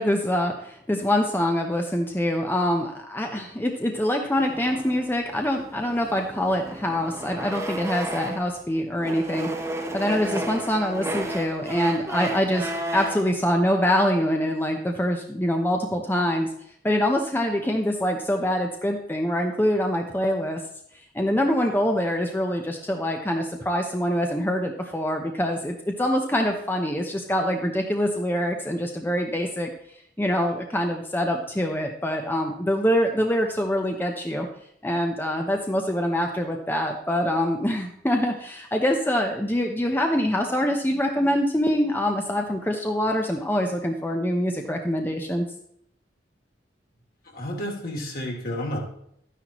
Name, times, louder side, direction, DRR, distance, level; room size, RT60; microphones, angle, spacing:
voice 1, 0.0-9.5 9.9-16.5 16.8-20.6 21.1-29.7 30.2-34.5 34.8-45.5, equal, 10° left, 2 dB, 0.8 m, -25 dB
sound 1, 4.4-8.6 9.0-13.3, right 1 dB, 15° right, 1.2 m, -33 dB
voice 2, 47.3-48.8, equal, 55° left, -1 dB, 3.0 m, -31 dB
12.5 x 10.0 x 3.0 m, 0.71 s
head